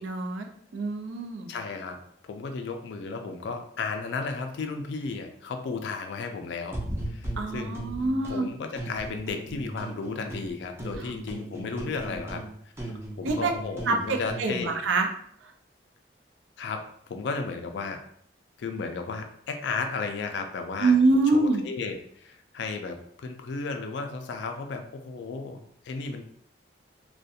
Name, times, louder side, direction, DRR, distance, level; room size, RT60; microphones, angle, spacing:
voice 1, 0.0-0.5 0.7-1.5 7.4-8.5 11.0-11.1 13.2-13.5 13.9-15.1 15.4-15.5 20.8-21.6, right 3 dB, 85° right, 4 dB, 0.4 m, -25 dB
voice 2, 1.5-6.8 7.1-7.8 8.3-12.4 12.8-14.8 16.6-18.0 18.6-21.0 21.3-26.2, left 4 dB, 70° left, 5 dB, 0.3 m, -34 dB
sound 1, 6.7-8.4 8.8-10.5 10.8-14.5, right 1 dB, 15° right, 0.4 m, -37 dB
2.4 x 2.1 x 2.7 m, 0.66 s
head